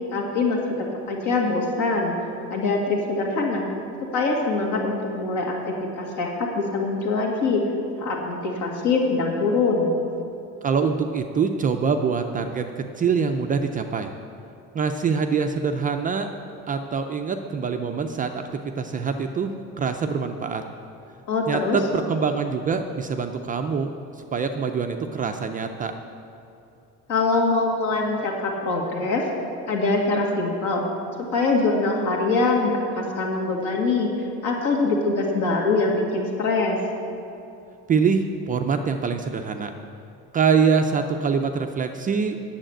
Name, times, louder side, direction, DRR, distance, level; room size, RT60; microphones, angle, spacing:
voice 1, 0.1-2.1 2.5-3.7 4.1-7.6 8.0-9.9 21.3-21.8 27.1-29.2 29.7-30.8 31.3-34.1 34.4-36.8, left 3 dB, 65° left, 0 dB, 2.2 m, -23 dB
voice 2, 10.6-14.1 14.7-16.3 16.7-18.4 18.8-19.5 19.8-20.6 21.5-23.9 24.3-25.9 37.9-39.7 40.3-42.4, right 5 dB, 25° right, 5 dB, 0.4 m, -24 dB
9.0 x 7.2 x 8.8 m, 2.8 s
cardioid pair, 175°, 33 cm